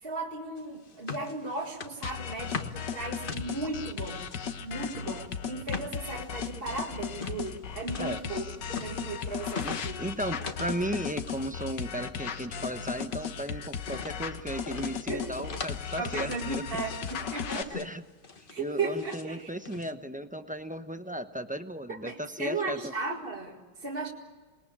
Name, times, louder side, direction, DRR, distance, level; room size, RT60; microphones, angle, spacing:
voice 1, 0.0-4.2 4.6-10.0 15.1-15.4 16.0-17.7 18.5-19.5 21.9-24.1, right 3 dB, 35° right, -1 dB, 2.2 m, -36 dB
sound 1, 0.6-4.4 4.8-10.8 11.1-11.7 12.0-13.4 13.8-14.2 14.7-15.8 16.1-17.2 17.6-18.0 18.2-19.3 19.6-19.9, left 4 dB, 35° left, 1.3 m, -42 dB
sound 2, 2.0-17.6, left 7 dB, 80° left, 1.8 m, -36 dB
voice 2, 9.6-16.7 17.3-18.0 18.6-22.9, equal, 5° right, 8 dB, 0.7 m, -35 dB
27.5 x 21.0 x 8.8 m, 1.4 s
omnidirectional pair, 1.9 m